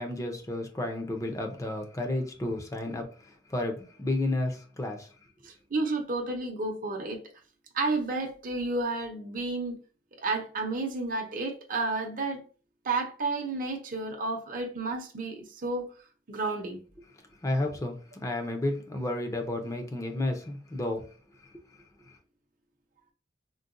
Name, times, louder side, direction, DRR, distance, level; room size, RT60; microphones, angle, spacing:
voice 1, 0.0-5.1 17.4-21.1, left 1 dB, 15° left, 0.5 m, -32 dB
voice 2, 5.4-7.2 7.7-9.8 10.2-12.4 12.8-15.9 16.3-16.8, right 3 dB, 45° right, 0.7 m, -31 dB
3.8 x 2.2 x 2.5 m
head